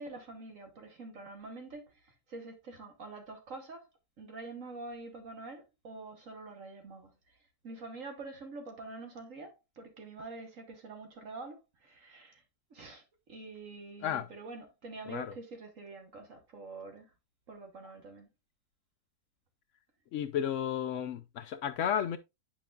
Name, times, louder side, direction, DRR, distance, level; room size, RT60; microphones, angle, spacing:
voice 1, 0.0-3.9 4.2-7.4 7.6-12.4 12.7-13.0 13.3-17.1 17.5-18.3, right 3 dB, 55° right, 1.5 m, -46 dB
voice 2, 20.1-22.2, left 9 dB, 70° left, 0.7 m, -33 dB
9.0 x 5.1 x 2.3 m
omnidirectional pair, 1.7 m